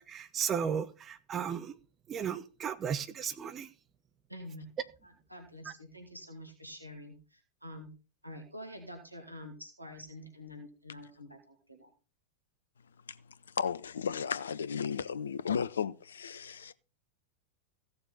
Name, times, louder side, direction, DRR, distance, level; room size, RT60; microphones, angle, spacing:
voice 1, 0.0-1.7 2.1-3.7, right 7 dB, 25° right, 1.0 m, -35 dB
voice 2, 4.3-4.6 5.0-7.9 8.2-11.9, left 1 dB, 90° right, 2.1 m, -47 dB
voice 3, 13.6-16.7, left 7 dB, 70° left, 0.6 m, -34 dB
15.5 x 7.0 x 4.0 m
figure-of-eight pair, 90°, 0 cm